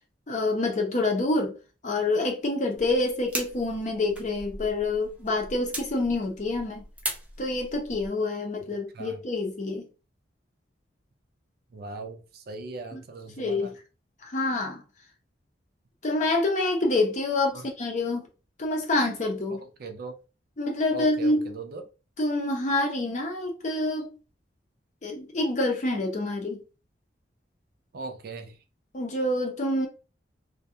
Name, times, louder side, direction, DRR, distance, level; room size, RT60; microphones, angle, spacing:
voice 1, 0.3-1.5 1.8-6.8 7.4-9.9 12.9-13.0 13.4-13.7 14.2-14.8 16.0-18.3 18.6-19.6 20.6-21.5 22.2-24.1 25.0-26.6 28.9-29.9, left 2 dB, 40° left, 0.6 m, -27 dB
sound 1, 2.7-8.1, right 1 dB, 10° right, 0.6 m, -39 dB
voice 2, 11.7-13.7 17.5-17.7 19.5-20.2 20.9-21.8 27.9-28.6, right 3 dB, 55° right, 0.4 m, -39 dB
2.4 x 2.2 x 2.7 m
head